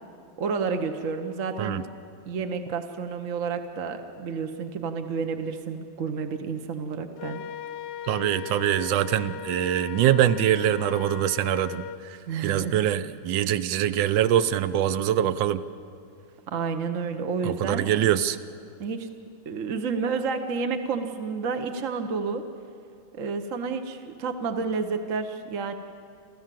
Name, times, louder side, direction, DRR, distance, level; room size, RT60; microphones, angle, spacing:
voice 1, 0.4-1.8 2.3-7.4 12.3-12.8 16.5-17.9 18.8-19.1 19.5-22.4 23.2-25.7, right 5 dB, 50° right, 6 dB, 1.1 m, -30 dB
Wind instrument woodwind instrument, 7.2-12.0, left 9 dB, 70° left, 1.2 m, -37 dB
voice 2, 8.1-11.9 12.4-15.6 17.4-18.4, right 11 dB, 75° right, 15 dB, 1.4 m, -23 dB
28.0 x 14.5 x 7.5 m, 2.5 s
omnidirectional pair, 2.2 m